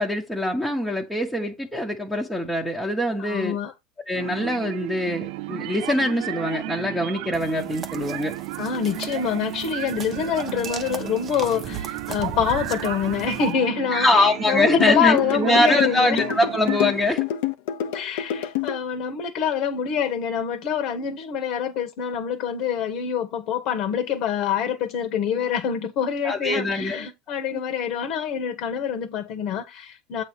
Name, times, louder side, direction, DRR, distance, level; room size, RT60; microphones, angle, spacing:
voice 1, 0.0-3.6 4.1-8.3 13.9-17.3 26.2-27.1 27.5-27.6, left 1 dB, ahead, 1.1 m, -23 dB
voice 2, 3.2-3.7 8.6-16.2 17.9-30.2, left 7 dB, 50° left, 1.3 m, -26 dB
sound 1, 4.1-17.2, right 17 dB, 65° right, 0.5 m, -34 dB
sound 2, 7.3-13.5, right 6 dB, 25° right, 0.9 m, -38 dB
sound 3, 14.8-18.8, left 11 dB, 75° left, 0.8 m, -26 dB
8.1 x 3.0 x 6.1 m
supercardioid pair, 140°, 0 cm